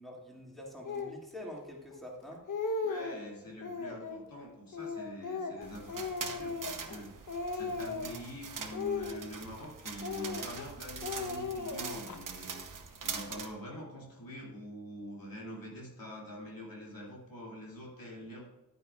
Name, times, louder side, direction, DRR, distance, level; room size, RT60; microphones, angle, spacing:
voice 1, 0.0-2.4, left 1 dB, ahead, -3 dB, 2.4 m, -46 dB
Speech, 0.9-1.2 1.9-2.0 2.3-3.2 3.6-4.2 4.7-7.0 7.3-8.2 8.7-9.7 10.0-10.7 11.0-12.2, left 4 dB, 65° left, 1.1 m, -37 dB
voice 2, 2.8-12.6 13.0-18.5, equal, 90° left, -3 dB, 2.7 m, -45 dB
sound 1, 5.6-13.5, right 5 dB, 70° right, 0.9 m, -43 dB
10.0 x 9.5 x 2.4 m, 0.99 s
wide cardioid pair, 75°, 33 cm